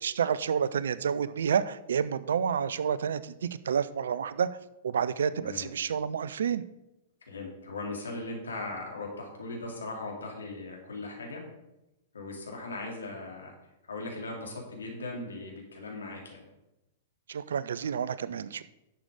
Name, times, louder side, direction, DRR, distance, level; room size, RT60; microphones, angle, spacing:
voice 1, 0.0-4.5 4.8-6.6 17.3-18.6, right 7 dB, 65° right, 16 dB, 0.5 m, -29 dB
voice 2, 7.3-11.4 12.1-13.5 13.9-16.5, left 2 dB, 75° left, 0 dB, 3.1 m, -39 dB
11.0 x 6.8 x 5.0 m, 0.93 s
figure-of-eight pair, 105°, 0 cm